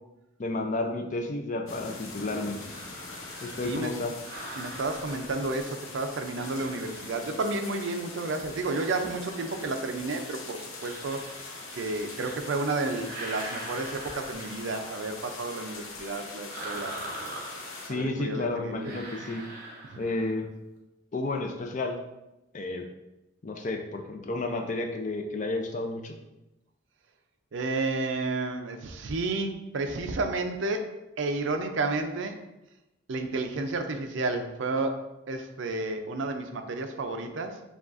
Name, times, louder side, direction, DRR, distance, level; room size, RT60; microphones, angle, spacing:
voice 1, 0.4-2.6 3.4-4.1 17.8-19.5 20.0-20.5 21.1-22.0 22.5-22.9 23.4-26.2, left 2 dB, 35° left, 3 dB, 0.4 m, -31 dB
sound 1, 1.6-17.9, left 3 dB, 80° left, 0.7 m, -42 dB
sound 2, 2.5-5.9 6.3-7.9 8.4-10.1 10.7-12.6 12.9-14.8 16.5-18.1 18.8-20.4, right 2 dB, 45° right, 0.9 m, -43 dB
voice 2, 4.6-11.2 11.7-16.9 17.9-19.1 19.9-20.0 27.5-32.4 33.1-37.6, right 3 dB, 65° right, 6 dB, 0.4 m, -31 dB
7.0 x 2.3 x 2.5 m, 0.94 s
head